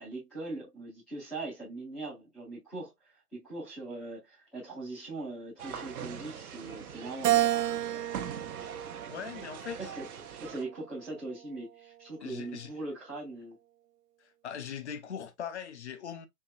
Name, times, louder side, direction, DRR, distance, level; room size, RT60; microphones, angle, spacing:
voice 1, 0.0-7.4 9.8-10.0 10.4-13.6, right 2 dB, ahead, 0.7 m, -41 dB
sound 1, 5.6-10.6, right 7 dB, 65° right, 1.0 m, -42 dB
Keyboard (musical), 7.2-9.7 10.3-11.5, right 14 dB, 85° right, 0.6 m, -31 dB
voice 2, 9.1-9.9 12.2-12.7 14.2-16.3, left 8 dB, 45° left, 0.7 m, -41 dB
4.5 x 3.1 x 2.3 m
hypercardioid pair, 165°, 47 cm